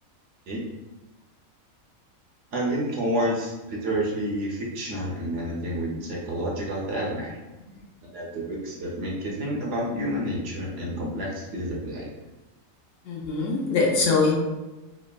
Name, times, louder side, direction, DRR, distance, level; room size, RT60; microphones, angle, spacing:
voice 1, 2.5-7.4 8.1-12.1, equal, 65° right, -3 dB, 0.9 m, -29 dB
voice 2, 13.1-14.3, left 4 dB, 70° left, -2 dB, 0.9 m, -22 dB
3.3 x 2.1 x 2.2 m, 1.1 s
omnidirectional pair, 1.4 m